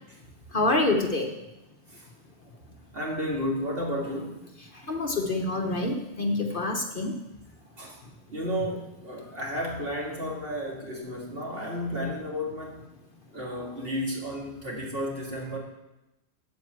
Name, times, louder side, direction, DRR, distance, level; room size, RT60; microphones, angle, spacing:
voice 1, 0.5-1.3 4.9-7.2, left 2 dB, 45° left, 3 dB, 1.2 m, -26 dB
voice 2, 2.9-4.4 7.8-8.0 8.3-12.8 13.3-15.6, equal, 50° right, -2 dB, 2.7 m, -32 dB
9.2 x 7.8 x 7.7 m, 0.95 s
omnidirectional pair, 1.3 m